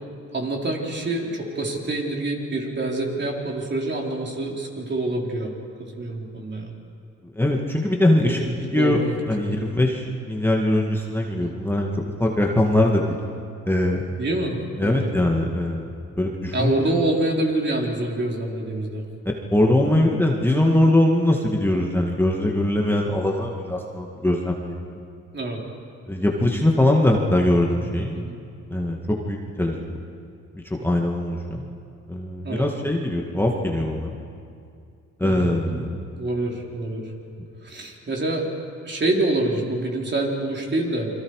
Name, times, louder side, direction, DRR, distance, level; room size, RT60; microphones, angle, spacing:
voice 1, 0.3-5.5 6.0-6.7 8.2-9.2 9.5-9.7 14.2-15.1 16.5-19.0 25.3-25.6 27.7-28.4 32.4-32.7 35.2-35.9 36.2-37.1 37.6-38.5 38.8-41.1, right 2 dB, 35° right, -1 dB, 4.1 m, -26 dB
voice 2, 7.4-9.0 9.3-13.2 13.7-14.0 14.8-15.9 16.2-17.0 19.5-25.0 26.1-28.2 28.7-29.7 30.5-31.7 32.1-34.1 35.2-36.0, left 1 dB, 5° left, -1 dB, 2.0 m, -22 dB
28.5 x 23.0 x 4.9 m, 2.4 s
cardioid pair, 90°, 30 cm